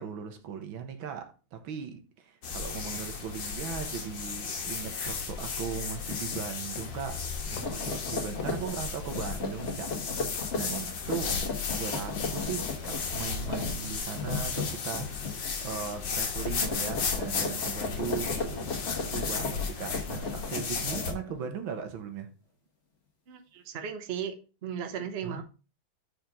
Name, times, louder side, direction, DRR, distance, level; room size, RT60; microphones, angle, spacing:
voice 1, 0.0-11.4 11.7-22.3 25.2-25.4, right 7 dB, 85° right, 1.8 m, -38 dB
sound 1, 2.4-21.1, left 5 dB, 70° left, 1.9 m, -35 dB
sound 2, 6.0-6.4 6.7-6.9 7.4-15.5 15.8-16.1 16.4-21.5, left 3 dB, 40° left, 1.6 m, -36 dB
sound 3, 6.8-7.2 7.6-7.9 8.4-8.7 9.2-9.5 9.9-10.3 10.6-11.0 11.4-11.8 12.1-12.5 12.9-13.0, left 5 dB, 85° left, 2.1 m, -44 dB
voice 2, 23.3-24.3 24.6-25.4, right 8 dB, 45° right, 0.9 m, -36 dB
5.0 x 4.6 x 5.2 m
omnidirectional pair, 2.1 m